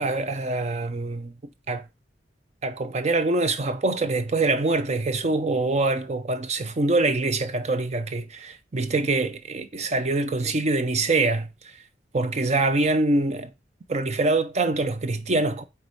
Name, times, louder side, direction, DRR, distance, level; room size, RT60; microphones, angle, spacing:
voice 1, 0.0-1.3 1.7-1.8 2.6-11.5 12.1-13.5 13.9-15.6, right 2 dB, 40° right, 0.5 m, -24 dB
4.7 x 4.2 x 5.3 m
head